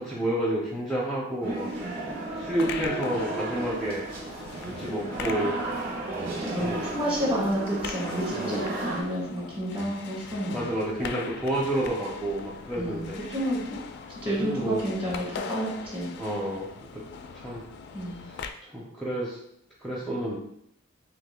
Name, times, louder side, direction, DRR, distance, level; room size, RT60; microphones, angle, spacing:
voice 1, 0.0-1.7 2.4-4.1 4.8-5.6 6.6-6.8 8.4-8.5 10.5-13.2 14.3-14.8 16.2-17.0 17.3-17.6 18.6-19.4 19.8-20.4, right 1 dB, ahead, -5 dB, 0.5 m, -30 dB
sound 1, 1.4-9.0, right 2 dB, 50° right, 1.4 m, -34 dB
sound 2, 2.3-18.5, left 5 dB, 60° left, 0.3 m, -41 dB
voice 2, 6.2-10.6 12.7-13.8 14.2-16.1 17.9-18.3, equal, 25° right, -4 dB, 1.5 m, -30 dB
5.6 x 3.0 x 2.2 m, 0.75 s
head